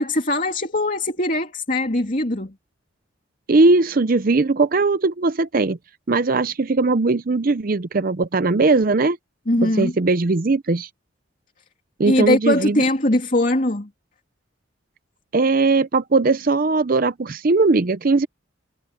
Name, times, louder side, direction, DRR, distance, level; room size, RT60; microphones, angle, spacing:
voice 1, 0.0-2.5 9.5-9.9 12.0-13.9, left 1 dB, 40° left, 2.9 m, -21 dB
voice 2, 3.5-5.8 6.1-9.2 9.6-10.9 12.0-12.8 15.3-18.3, right 3 dB, 45° right, 0.6 m, -19 dB
head